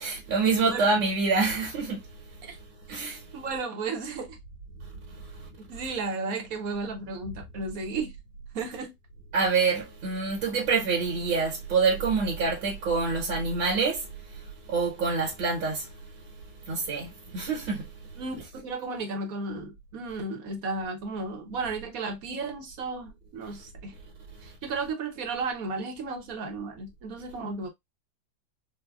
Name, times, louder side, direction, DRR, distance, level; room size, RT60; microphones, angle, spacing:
voice 1, 0.0-2.0 2.9-3.2 9.3-14.1 14.7-15.9 16.7-17.8, right 4 dB, 75° right, 1.9 m, -26 dB
voice 2, 3.3-4.4 5.6-8.1 8.5-8.9 18.2-24.0 24.4-27.7, right 3 dB, 55° right, 1.1 m, -34 dB
4.7 x 2.2 x 2.3 m
omnidirectional pair, 2.1 m